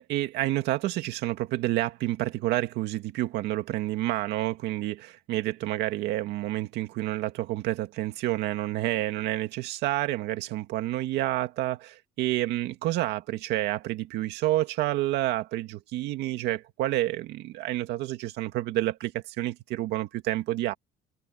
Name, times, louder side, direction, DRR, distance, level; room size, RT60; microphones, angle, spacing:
voice 1, 0.0-20.7, right 15 dB, 85° right, 2.1 m, -29 dB
cardioid pair, 110°, 17 cm